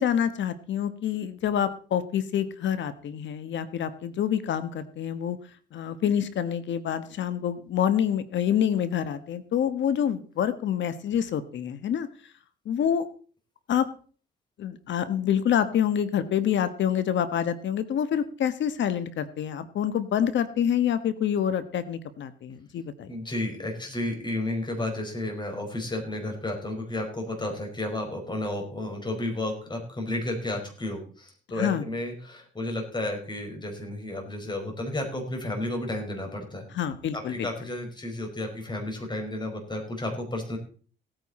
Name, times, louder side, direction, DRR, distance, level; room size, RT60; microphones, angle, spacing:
voice 1, 0.0-5.4 5.7-12.1 12.6-13.1 13.7-13.9 14.6-23.1 31.6-31.8 36.7-37.5, left 9 dB, 70° left, 13 dB, 1.3 m, -27 dB
voice 2, 23.1-36.6 37.1-40.6, left 1 dB, 20° left, 3 dB, 5.1 m, -32 dB
18.0 x 9.1 x 4.3 m, 0.42 s
cardioid pair, 90°, 20 cm